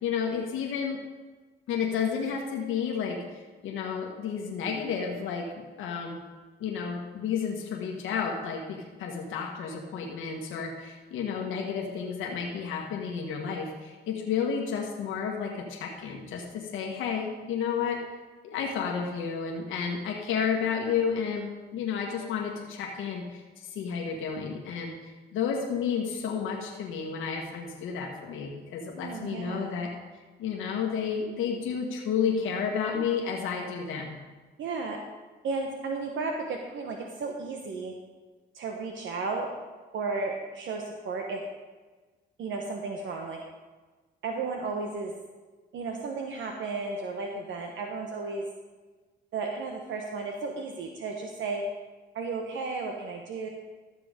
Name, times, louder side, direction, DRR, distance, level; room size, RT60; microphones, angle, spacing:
voice 1, 0.0-1.0 1.7-5.5 5.8-6.2 6.6-18.0 18.4-29.9 30.4-34.1, left 6 dB, 85° left, 0 dB, 1.5 m, -31 dB
voice 2, 29.0-29.8 34.6-35.0 35.4-37.9 38.5-39.5 39.9-41.4 42.4-43.4 44.2-45.1 45.7-48.4 49.3-51.6 52.1-53.5, right 4 dB, 75° right, 2 dB, 1.2 m, -34 dB
13.5 x 6.9 x 5.1 m, 1.3 s
cardioid pair, 90°, 20 cm